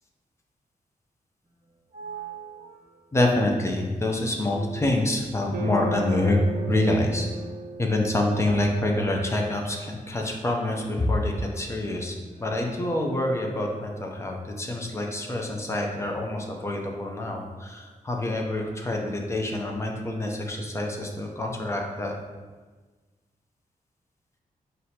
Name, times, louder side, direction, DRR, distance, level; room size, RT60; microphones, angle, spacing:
sound 1, 1.5-14.3, right 4 dB, 40° right, 1.1 m, -47 dB
voice 1, 3.1-6.4 6.7-7.3 7.8-22.1, left 1 dB, 20° left, 1 dB, 0.6 m, -26 dB
sound 2, 5.5-9.9, right 1 dB, 75° right, 0.4 m, -37 dB
6.1 x 2.6 x 2.8 m, 1.3 s
wide cardioid pair, 110°, 15 cm